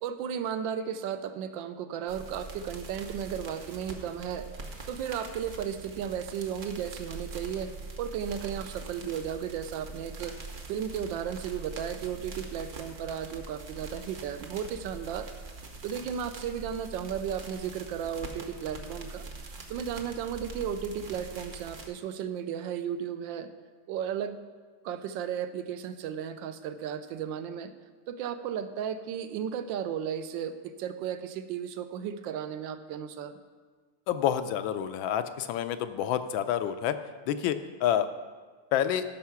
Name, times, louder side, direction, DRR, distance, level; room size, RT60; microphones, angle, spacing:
voice 1, 0.0-4.5 4.9-7.7 8.0-10.4 10.7-15.3 15.8-19.2 19.7-23.5 23.9-24.4 24.8-27.7 28.1-33.3, right 8 dB, 70° right, 10 dB, 1.3 m, -34 dB
sound 1, 2.1-21.9, right 3 dB, 45° right, 1.2 m, -43 dB
voice 2, 34.1-36.9 37.3-38.1 38.7-39.0, left 10 dB, 75° left, 10 dB, 1.3 m, -28 dB
13.0 x 5.6 x 5.8 m, 1.5 s
omnidirectional pair, 2.3 m